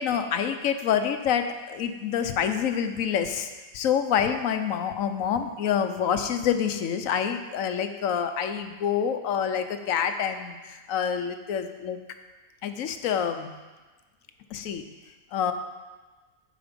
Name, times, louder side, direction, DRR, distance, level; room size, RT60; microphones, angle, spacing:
voice 1, 0.0-12.0 12.6-13.5 14.5-14.8 15.3-15.5, left 8 dB, 80° left, 8 dB, 1.1 m, -27 dB
13.5 x 4.9 x 5.2 m, 1.3 s
omnidirectional pair, 1.4 m